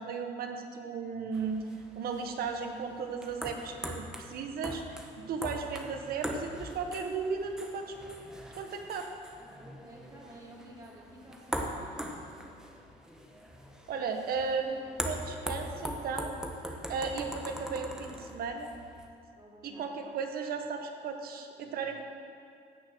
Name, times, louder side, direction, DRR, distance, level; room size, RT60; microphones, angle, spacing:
voice 1, 0.0-1.6 1.9-8.3 8.5-9.1 13.9-16.3 16.9-18.7 19.6-22.0, right 5 dB, 65° right, 4 dB, 1.4 m, -35 dB
sound 1, 1.3-19.1, equal, 5° right, 1.2 m, -41 dB
voice 2, 9.6-12.4 19.4-19.8, right 1 dB, 20° right, -4 dB, 3.0 m, -52 dB
16.0 x 6.2 x 6.3 m, 2.4 s
cardioid pair, 110°, 17 cm